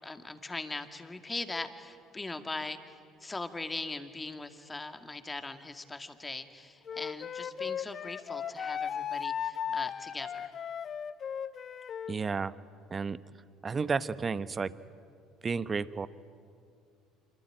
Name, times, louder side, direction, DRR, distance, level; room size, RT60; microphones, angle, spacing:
voice 1, 0.0-10.5, left 2 dB, 20° left, 8 dB, 2.2 m, -40 dB
Wind instrument woodwind instrument, 6.9-12.2, left 8 dB, 45° left, 0.9 m, -36 dB
voice 2, 12.1-12.5 12.9-13.2 13.6-14.7 15.4-16.1, right 5 dB, 30° right, 15 dB, 1.0 m, -32 dB
27.5 x 24.0 x 9.1 m, 2.3 s
hypercardioid pair, 65°, 0 cm